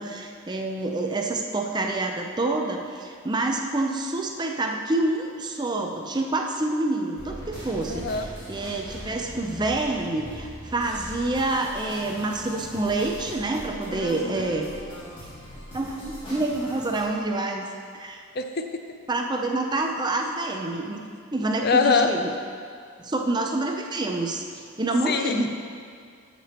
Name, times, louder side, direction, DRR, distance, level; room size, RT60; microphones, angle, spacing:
voice 1, 0.0-14.7 15.7-18.2 19.1-21.0 21.3-22.3 23.0-25.5, right 2 dB, 20° right, 2 dB, 0.5 m, -27 dB
sound 1, 7.2-17.0, equal, 25° left, 2.5 m, -40 dB
voice 2, 7.9-8.3 13.9-14.6 18.3-18.8 21.6-22.1 25.0-25.4, left 4 dB, 45° left, 6 dB, 0.5 m, -24 dB
14.5 x 6.8 x 3.0 m, 2.2 s
head